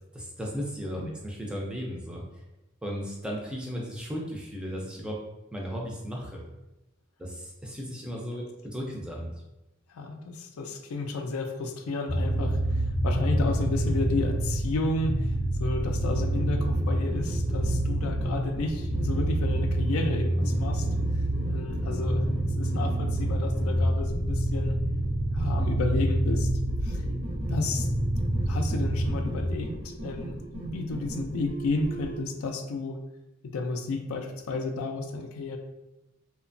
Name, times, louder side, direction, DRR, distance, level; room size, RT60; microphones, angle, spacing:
voice 1, 0.1-2.4 2.8-5.2 5.5-6.4 7.2-9.3, equal, 5° right, -2 dB, 0.3 m, -35 dB
voice 2, 9.9-15.3 15.6-20.9 21.5-22.2 22.5-24.8 25.3-26.5 26.8-27.0 27.5-27.9 28.5-33.0 33.4-35.6, left 3 dB, 85° left, 5 dB, 0.4 m, -32 dB
sound 1, 12.1-29.6, right 1 dB, 80° right, 0.8 m, -27 dB
sound 2, 15.8-32.2, right 1 dB, 55° right, 0.5 m, -39 dB
2.8 x 2.1 x 2.5 m, 0.97 s
head